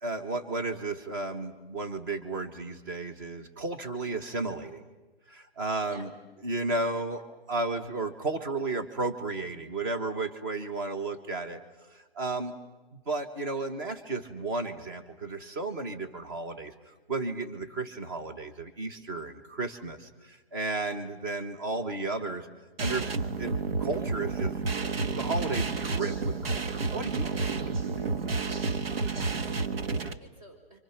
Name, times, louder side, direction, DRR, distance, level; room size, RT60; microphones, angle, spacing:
voice 1, 0.0-4.8 5.3-6.1 6.4-7.2 7.5-11.6 11.9-12.5 12.9-22.5 22.8-23.1 23.4-24.5 25.0-27.5, right 3 dB, 20° right, 7 dB, 1.4 m, -33 dB
voice 2, 6.7-7.0 29.0-30.8, right 1 dB, 35° right, 4 dB, 5.4 m, -51 dB
sound 1, 22.8-30.1, right 4 dB, 70° right, 1.6 m, -30 dB
30.0 x 25.5 x 6.0 m, 1.2 s
hypercardioid pair, 170°, 30 cm